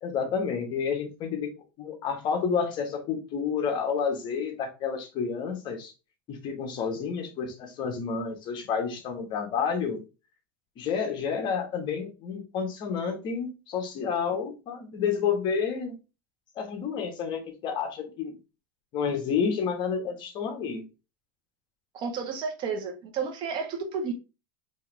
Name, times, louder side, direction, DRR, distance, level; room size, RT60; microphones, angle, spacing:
voice 1, 0.0-5.9 6.3-10.0 10.8-15.9 16.5-18.3 18.9-20.9, left 6 dB, 45° left, 1.3 m, -30 dB
voice 2, 21.9-24.1, right 5 dB, 45° right, 1.3 m, -32 dB
4.6 x 3.0 x 3.3 m
supercardioid pair, 140°, 11 cm